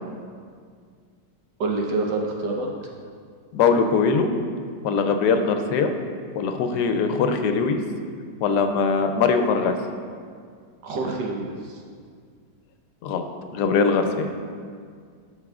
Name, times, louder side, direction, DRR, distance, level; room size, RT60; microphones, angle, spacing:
voice 1, 1.6-2.7 10.8-11.8, right 3 dB, 75° right, -1 dB, 1.6 m, -27 dB
voice 2, 3.5-4.3 4.8-5.9 6.3-7.8 8.4-9.7 13.0-13.3 13.5-14.3, left 5 dB, 75° left, 7 dB, 1.1 m, -21 dB
13.0 x 5.3 x 2.4 m, 2.1 s
omnidirectional pair, 1.8 m